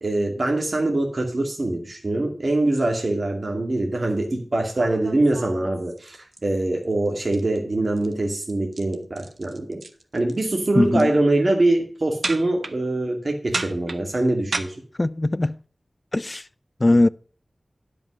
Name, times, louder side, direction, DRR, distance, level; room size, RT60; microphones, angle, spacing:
voice 1, 0.0-9.8 10.1-14.8, right 2 dB, 50° right, 2.3 m, -23 dB
sound 1, 4.8-6.4 6.8-7.1 7.3-7.6 7.9-8.1 8.4-10.4 10.7-11.1 12.2-12.7 13.5-14.6, right 3 dB, 75° right, 1.1 m, -32 dB
voice 2, 10.7-11.2 15.0-15.6 16.1-16.4 16.8-17.1, left 2 dB, 30° left, 0.4 m, -20 dB
11.0 x 5.4 x 6.2 m
wide cardioid pair, 75°, 0 cm